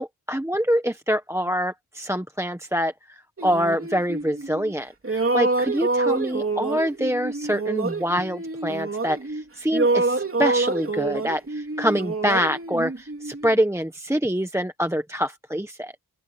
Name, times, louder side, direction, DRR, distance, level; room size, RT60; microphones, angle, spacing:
voice 1, 0.0-15.9, equal, 5° right, 1.3 m, -25 dB
sound 1, 3.4-4.7 5.0-9.4 9.7-13.5, right 3 dB, 35° right, 3.2 m, -26 dB
open air
wide cardioid pair, 95°, 39 cm